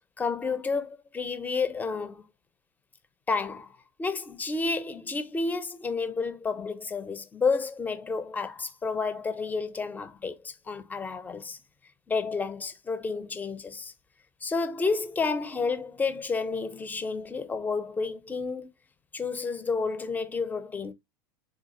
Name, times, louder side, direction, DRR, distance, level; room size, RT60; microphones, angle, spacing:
voice 1, 0.2-2.3 3.3-3.7 4.0-11.6 12.1-13.9 14.4-18.7 19.1-20.9, left 4 dB, 15° left, 0.5 m, -30 dB
3.9 x 2.4 x 2.8 m
hypercardioid pair, 105°, 12 cm